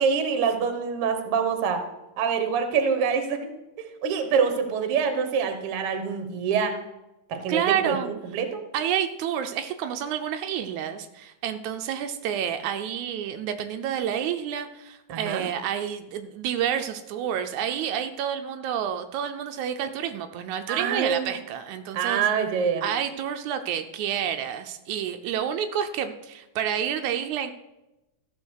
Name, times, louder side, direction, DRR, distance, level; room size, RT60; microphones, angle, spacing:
voice 1, 0.0-1.8 2.2-3.5 3.8-6.8 7.3-8.6 15.1-15.4 20.7-21.3 21.9-22.8, right 6 dB, 60° right, 7 dB, 1.8 m, -25 dB
voice 2, 7.5-8.1 8.7-22.2 22.8-27.5, right 9 dB, 85° right, 7 dB, 2.0 m, -29 dB
14.0 x 4.9 x 6.3 m, 0.96 s
omnidirectional pair, 3.3 m